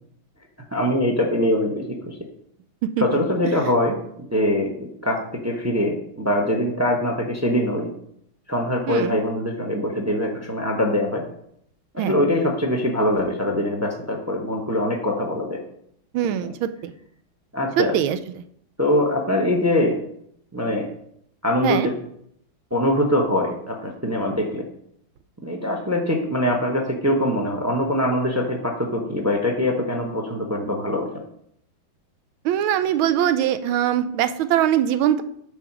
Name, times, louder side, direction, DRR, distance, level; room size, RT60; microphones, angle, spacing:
voice 1, 0.7-2.2 3.0-7.9 8.5-11.2 11.9-15.6 17.5-18.0 18.8-20.0 20.5-20.9 21.4-22.0 22.7-24.7 25.4-31.1, left 1 dB, 25° right, 2 dB, 0.3 m, -23 dB
voice 2, 8.9-9.2 12.0-12.1 16.1-16.9 17.8-18.2 21.6-21.9 32.4-35.2, right 10 dB, 85° right, 12 dB, 1.4 m, -22 dB
6.8 x 4.9 x 6.0 m, 0.69 s
omnidirectional pair, 2.2 m